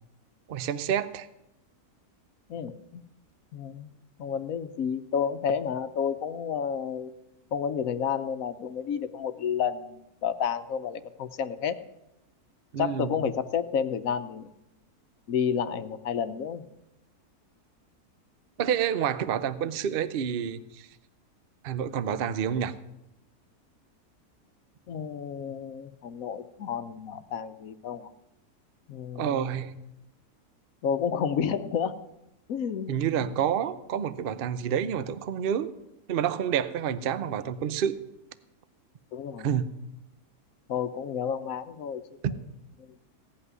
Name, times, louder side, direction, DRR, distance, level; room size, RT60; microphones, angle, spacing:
voice 1, 0.5-1.3 12.7-13.1 18.6-20.9 21.6-22.7 29.2-29.7 32.9-35.7 36.1-38.0 39.4-39.7 42.2-42.3, right 8 dB, 50° right, 13 dB, 0.7 m, -28 dB
voice 2, 2.5-3.0 3.5-3.9 4.2-7.1 7.5-11.8 12.8-14.5 15.3-16.6 24.9-28.1 28.9-29.4 30.8-31.9 32.5-32.9 33.2-33.3 39.1-39.5 40.7-42.0 42.8-42.9, left 7 dB, 65° left, 12 dB, 1.1 m, -30 dB
17.0 x 5.8 x 9.6 m, 0.88 s
omnidirectional pair, 1.6 m